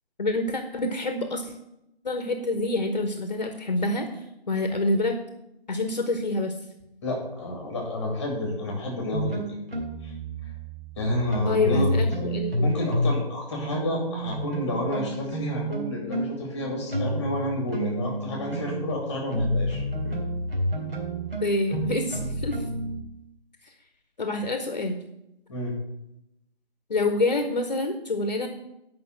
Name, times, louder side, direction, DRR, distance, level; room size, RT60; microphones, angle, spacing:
voice 1, 0.2-1.5 2.0-5.2 5.7-6.5 11.4-12.9 21.4-22.6 24.2-25.0 26.9-28.5, left 2 dB, 45° left, 6 dB, 1.0 m, -27 dB
voice 2, 7.0-9.4 10.0-10.1 11.0-12.3 12.6-20.1 25.5-25.7, left 1 dB, 5° left, 0 dB, 1.9 m, -30 dB
sound 1, 9.1-13.2 13.5-23.0, equal, 70° right, 3.5 m, -30 dB
9.4 x 5.5 x 7.6 m, 0.84 s
figure-of-eight pair, 160°, 31 cm